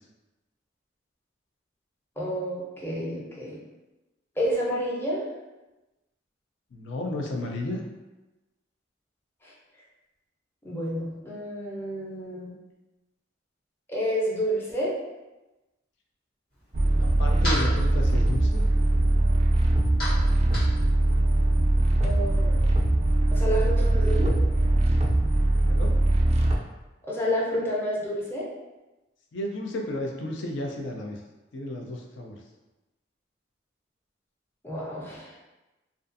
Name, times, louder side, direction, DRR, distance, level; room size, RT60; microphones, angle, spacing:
voice 1, 2.2-3.6 4.4-5.3 9.4-9.5 10.6-12.5 13.9-14.9 22.0-22.6 23.3-24.3 27.1-28.5 34.6-35.3, equal, 15° left, -6 dB, 0.6 m, -29 dB
voice 2, 6.7-7.8 17.0-18.7 25.7-25.9 29.3-31.2 31.5-32.4, left 1 dB, 90° left, 1 dB, 0.4 m, -33 dB
sound 1, 16.5-22.2, left 1 dB, 60° left, 1.2 m, -38 dB
sound 2, 16.7-26.6, right 1 dB, 35° right, 0.3 m, -22 dB
2.4 x 2.4 x 2.5 m, 1.1 s
head